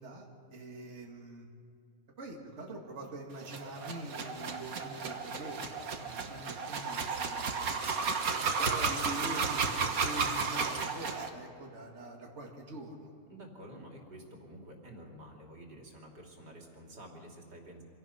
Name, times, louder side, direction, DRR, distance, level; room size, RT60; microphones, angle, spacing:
voice 1, 0.0-1.5 2.2-7.5 8.2-13.1, right 2 dB, 45° right, -1 dB, 2.5 m, -44 dB
sound 1, 3.4-11.3, right 5 dB, 60° right, 1.7 m, -33 dB
voice 2, 6.0-6.4 13.3-17.8, right 1 dB, 85° right, 0 dB, 3.7 m, -50 dB
26.0 x 17.0 x 5.8 m, 2.6 s
omnidirectional pair, 1.8 m